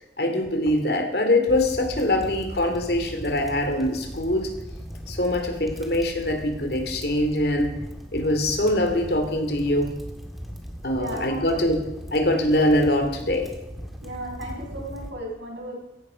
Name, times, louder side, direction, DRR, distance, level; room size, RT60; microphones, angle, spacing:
voice 1, 0.2-4.5 5.1-7.7 8.1-9.9 10.8-11.8 12.1-13.5, left 1 dB, 60° left, 5 dB, 2.8 m, -23 dB
sound 1, 1.5-15.1, equal, ahead, 2.1 m, -39 dB
voice 2, 10.9-11.6 14.0-15.8, right 1 dB, 85° right, -2 dB, 7.2 m, -35 dB
16.5 x 16.0 x 5.2 m, 0.96 s
head